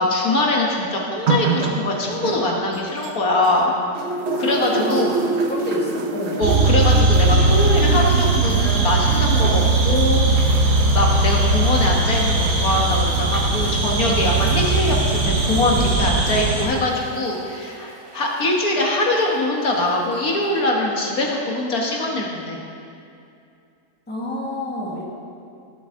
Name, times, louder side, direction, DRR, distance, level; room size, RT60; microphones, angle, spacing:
voice 1, 0.0-3.7 4.4-5.2 6.4-10.2 10.9-22.6, left 1 dB, 65° left, -1 dB, 1.7 m, -22 dB
sound 1, 1.3-3.6 4.0-18.7 19.6-19.7, right 4 dB, 50° right, 0.9 m, -29 dB
voice 2, 4.7-6.4 24.1-25.0, left 1 dB, 5° left, -4 dB, 1.4 m, -28 dB
sound 2, 6.4-16.6, right 2 dB, 85° right, 1.9 m, -19 dB
17.5 x 7.8 x 3.7 m, 2.5 s
omnidirectional pair, 1.7 m